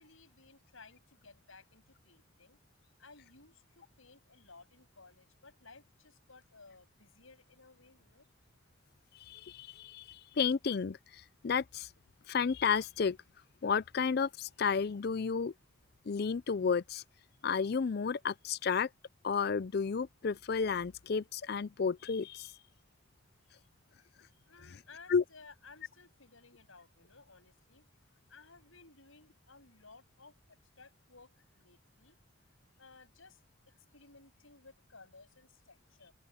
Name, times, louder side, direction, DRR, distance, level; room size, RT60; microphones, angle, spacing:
voice 1, 0.0-2.6 3.0-8.3 23.4-23.7 24.0-24.2 24.5-27.9 28.3-32.2 32.8-36.1, left 4 dB, 90° left, 7.3 m, -58 dB
voice 2, 9.3-11.9 12.3-13.2 13.6-15.5 16.1-17.0 17.4-18.9 19.2-22.5 25.1-25.2, left 5 dB, 50° left, 0.4 m, -32 dB
open air
head